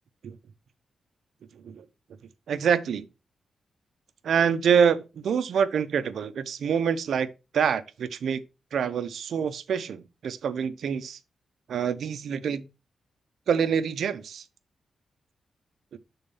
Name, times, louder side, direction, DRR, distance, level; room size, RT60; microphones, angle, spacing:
voice 1, 2.5-3.0 4.2-7.3 7.5-8.4 8.7-11.2 11.7-12.7 13.5-14.4, right 7 dB, 80° right, 0.7 m, -26 dB
6.9 x 3.9 x 5.4 m
cardioid pair, 105°, 0 cm